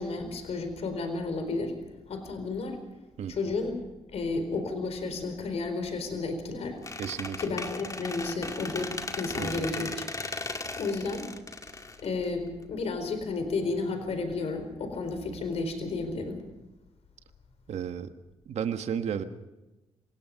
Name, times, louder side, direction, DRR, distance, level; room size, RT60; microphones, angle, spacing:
voice 1, 0.0-1.7 2.1-2.8 3.3-3.8 4.1-6.8 7.4-10.1 10.8-11.3 12.0-16.4, left 3 dB, 65° left, 8 dB, 4.3 m, -32 dB
Squeak, 6.8-12.6, left 3 dB, 30° left, 2.1 m, -37 dB
voice 2, 7.0-7.4 9.4-9.7 17.7-18.1 18.4-19.2, right 8 dB, 70° right, 8 dB, 1.6 m, -32 dB
27.0 x 18.0 x 5.4 m, 1.0 s
cardioid pair, 80°, 11 cm